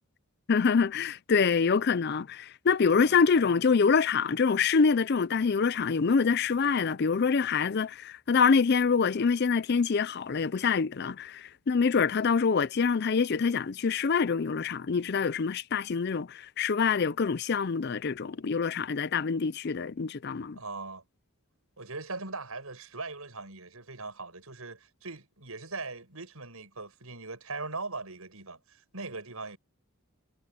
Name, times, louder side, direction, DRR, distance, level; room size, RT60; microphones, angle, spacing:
voice 1, 0.5-20.6, left 5 dB, 50° left, 0.5 m, -25 dB
voice 2, 20.5-21.0 21.8-29.6, right 3 dB, 80° right, 6.9 m, -40 dB
head